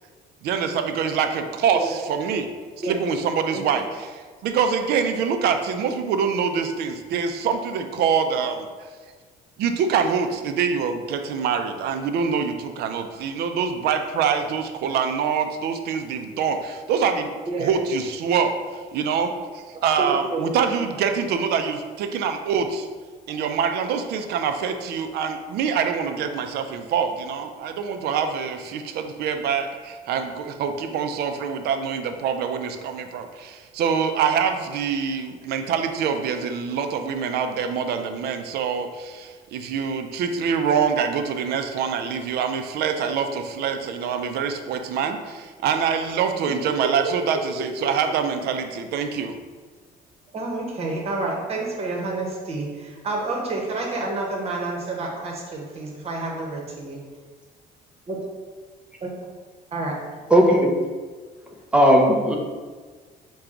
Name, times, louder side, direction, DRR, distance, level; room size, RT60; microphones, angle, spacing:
voice 1, 0.4-2.5 2.8-8.7 9.6-17.3 17.6-18.6 18.9-22.9 23.3-49.3, right 6 dB, 70° right, 7 dB, 0.5 m, -25 dB
voice 2, 20.0-20.8 47.0-47.9 50.3-57.0 58.1-58.2 59.0-59.1 59.7-59.9, right 2 dB, 35° right, 0 dB, 1.1 m, -29 dB
voice 3, 60.3-60.7 61.7-62.4, equal, 5° right, 0 dB, 0.7 m, -16 dB
5.8 x 2.3 x 3.8 m, 1.4 s
cardioid pair, 110°, 17 cm